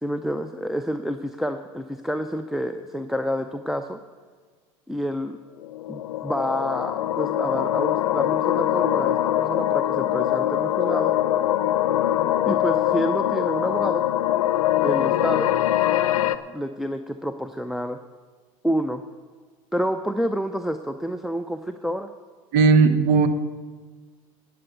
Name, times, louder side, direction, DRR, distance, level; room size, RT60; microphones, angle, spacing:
voice 1, 0.0-4.0 4.9-5.4 5.9-11.2 12.4-14.1 14.8-15.6 16.5-18.0 18.6-19.0 19.7-22.1, equal, ahead, 7 dB, 0.5 m, -28 dB
sound 1, 5.6-16.4, left 12 dB, 85° left, 0.5 m, -23 dB
voice 2, 22.5-23.3, right 4 dB, 60° right, 10 dB, 1.0 m, -16 dB
11.0 x 7.1 x 7.9 m, 1.5 s
hypercardioid pair, 90°, 18 cm